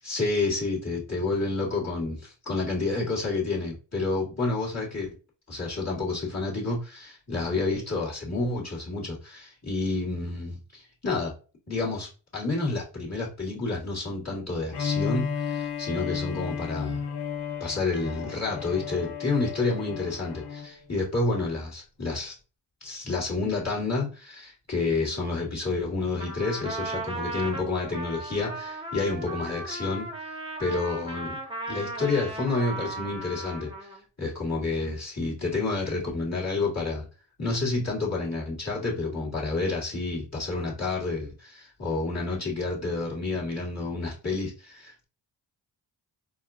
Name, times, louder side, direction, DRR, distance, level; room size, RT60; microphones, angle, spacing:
voice 1, 0.0-5.2 5.5-11.3 11.7-17.0 17.6-22.4 22.8-31.4 31.7-33.9 34.2-37.0 37.4-45.0, left 3 dB, 35° left, -6 dB, 1.8 m, -29 dB
Bowed string instrument, 14.7-20.7, left 6 dB, 55° left, 0.7 m, -33 dB
Trumpet, 26.2-34.0, right 2 dB, 10° right, 1.0 m, -36 dB
4.1 x 2.3 x 2.5 m, 0.35 s
cardioid pair, 55°, 47 cm